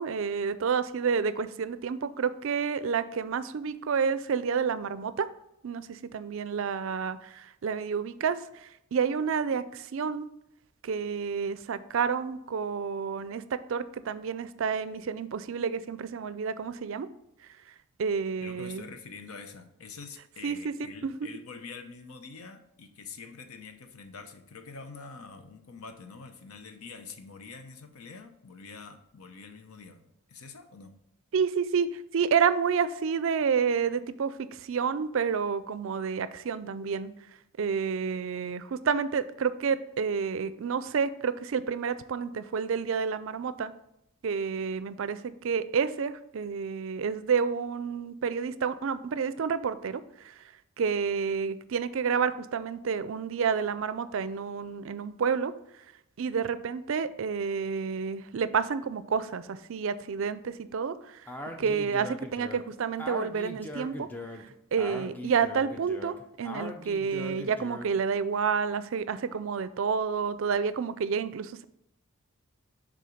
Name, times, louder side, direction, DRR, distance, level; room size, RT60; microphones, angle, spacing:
voice 1, 0.0-5.3 5.6-10.3 10.8-17.1 18.0-18.8 20.4-21.3 31.3-37.1 37.6-43.7 44.2-50.4 50.8-55.5 56.2-61.3 61.6-64.1 64.4-71.6, right 6 dB, 65° right, 14 dB, 0.4 m, -29 dB
voice 2, 18.4-30.9, left 4 dB, 85° left, 7 dB, 0.7 m, -46 dB
Speech, 61.3-68.0, left 1 dB, 10° left, 0.5 m, -40 dB
6.8 x 3.7 x 5.0 m, 0.80 s
head